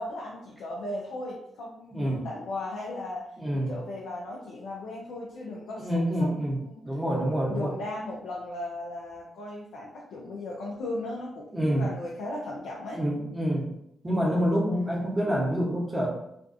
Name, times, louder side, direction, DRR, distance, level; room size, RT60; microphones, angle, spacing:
voice 1, 0.0-3.2 3.5-5.9 6.2-6.3 6.5-6.8 7.5-13.0 14.7-15.1, left 2 dB, 75° left, -3 dB, 0.4 m, -37 dB
voice 2, 1.9-2.3 3.4-3.7 5.8-6.6 6.8-7.7 11.5-11.9 12.9-13.7 14.0-16.1, equal, 20° right, -3 dB, 1.0 m, -27 dB
2.5 x 2.3 x 2.5 m, 0.78 s
hypercardioid pair, 45°, 0 cm